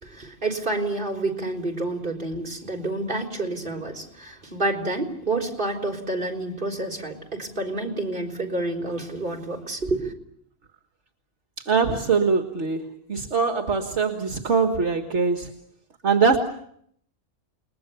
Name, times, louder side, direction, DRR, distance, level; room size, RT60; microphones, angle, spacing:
voice 1, 0.0-10.1, right 2 dB, 40° right, 3 dB, 4.0 m, -29 dB
voice 2, 11.6-15.5 16.0-16.4, right 5 dB, 60° right, 5 dB, 1.9 m, -22 dB
30.0 x 21.0 x 6.9 m, 0.68 s
omnidirectional pair, 1.3 m